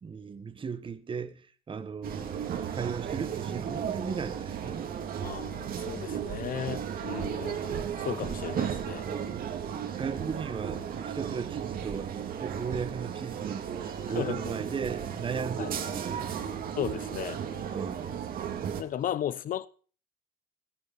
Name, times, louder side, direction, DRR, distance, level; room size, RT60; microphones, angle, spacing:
voice 1, 0.0-4.9 9.0-9.5 10.0-16.3 17.7-18.2, right 6 dB, 30° right, 1.3 m, -36 dB
sound 1, 2.0-18.8, right 8 dB, 60° right, 2.0 m, -35 dB
voice 2, 5.2-9.1 14.2-14.4 15.6-15.7 16.8-17.4 18.8-19.7, left 10 dB, 55° left, 0.9 m, -35 dB
15.5 x 10.0 x 6.0 m
cardioid pair, 110°, 17 cm